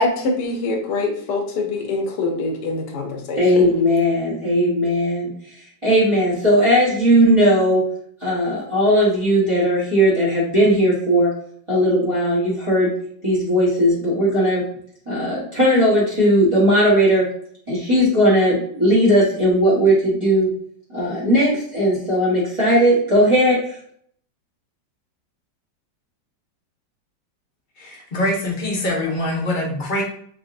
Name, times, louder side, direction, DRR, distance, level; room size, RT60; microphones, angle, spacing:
voice 1, 0.0-3.7, left 2 dB, 70° left, 2 dB, 1.3 m, -24 dB
voice 2, 3.3-5.3 5.8-7.8 8.2-11.3 11.7-12.9 13.2-14.6 15.1-17.3 17.7-20.5 20.9-23.7, equal, 20° right, -8 dB, 1.0 m, -17 dB
voice 3, 27.8-30.0, left 1 dB, 35° left, -2 dB, 0.9 m, -24 dB
3.8 x 3.7 x 2.5 m, 0.63 s
omnidirectional pair, 1.9 m